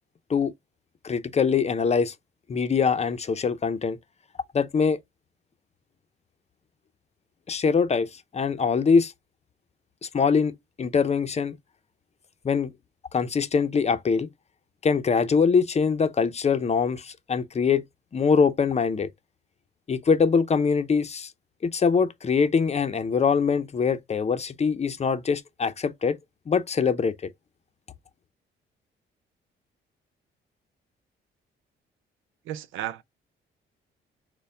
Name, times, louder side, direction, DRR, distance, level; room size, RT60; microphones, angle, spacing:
voice 1, 1.0-2.1 2.5-4.0 4.5-5.0 7.5-9.1 10.0-11.5 12.4-12.7 13.1-14.3 14.8-17.8 18.1-19.1 19.9-21.3 21.6-26.2 26.5-27.3, left 5 dB, 35° left, 0.7 m, -23 dB
voice 2, 32.5-33.0, right 11 dB, 90° right, 0.5 m, -33 dB
6.6 x 2.3 x 3.5 m
cardioid pair, 90°, 20 cm